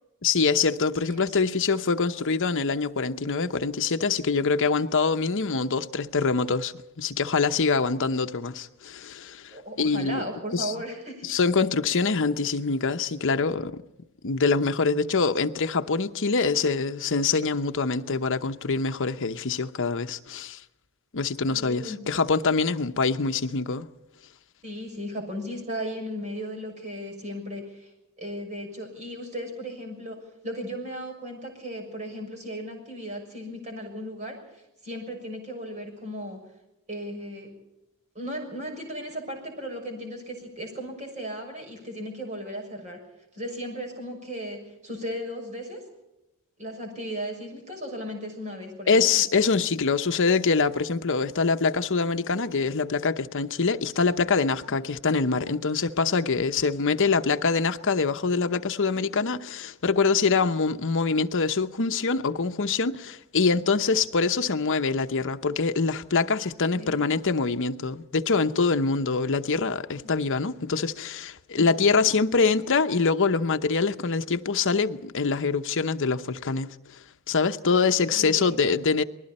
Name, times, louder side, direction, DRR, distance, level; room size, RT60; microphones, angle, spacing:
voice 1, 0.2-10.3 10.5-10.7 11.2-13.8 14.2-20.6 21.1-23.9 48.9-76.7 77.3-79.0, left 4 dB, 60° left, 0.9 m, -24 dB
voice 2, 9.5-11.2 21.4-22.0 24.6-27.9 28.2-36.4 36.9-37.5 38.1-43.0 43.3-45.9 46.6-49.1 66.7-67.0 70.0-70.1 71.5-71.7 77.6-77.8 78.1-78.6, equal, 35° right, 6.5 m, -36 dB
29.5 x 21.0 x 4.3 m
head